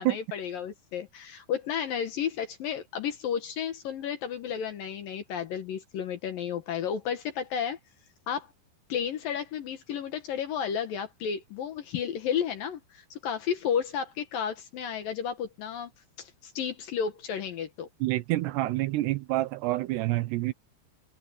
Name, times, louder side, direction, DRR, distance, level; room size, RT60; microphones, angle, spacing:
voice 1, 0.0-7.8 8.3-8.5 8.9-15.9 16.2-17.9, left 8 dB, 65° left, 2.6 m, -32 dB
voice 2, 18.0-20.5, right 17 dB, 75° right, 2.8 m, -27 dB
omnidirectional pair, 5.2 m